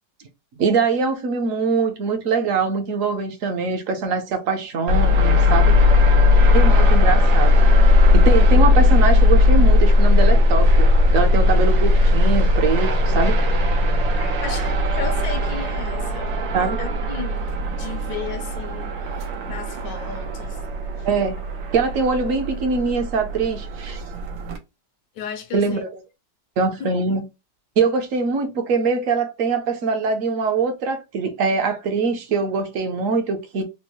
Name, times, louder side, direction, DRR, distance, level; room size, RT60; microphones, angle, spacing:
voice 1, 0.6-5.8 6.5-7.6 8.1-13.4 16.5-16.8 21.0-21.4 21.7-24.0 25.5-25.9 26.6-27.2 27.8-33.6, right 4 dB, 60° right, 0.9 m, -22 dB
sound 1, 4.9-24.6, left 2 dB, 90° right, 1.6 m, -17 dB
voice 2, 14.1-16.4 16.8-21.1 25.1-25.9 26.8-27.0, left 7 dB, 75° left, 1.2 m, -35 dB
4.3 x 2.1 x 2.9 m
omnidirectional pair, 2.0 m